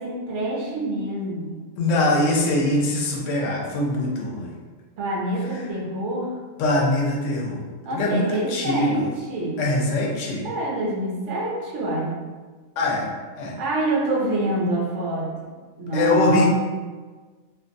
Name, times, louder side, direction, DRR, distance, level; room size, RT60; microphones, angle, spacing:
voice 1, 0.0-1.5 5.0-6.4 7.8-9.6 10.4-12.2 13.6-15.5 15.8-16.5, right 2 dB, 65° right, -2 dB, 0.8 m, -26 dB
voice 2, 1.8-4.5 6.6-7.6 7.9-9.1 9.6-10.5 12.8-13.1 13.4-13.6 15.9-16.5, left 2 dB, 70° left, -2 dB, 0.9 m, -22 dB
2.5 x 2.1 x 2.5 m, 1.4 s
omnidirectional pair, 1.5 m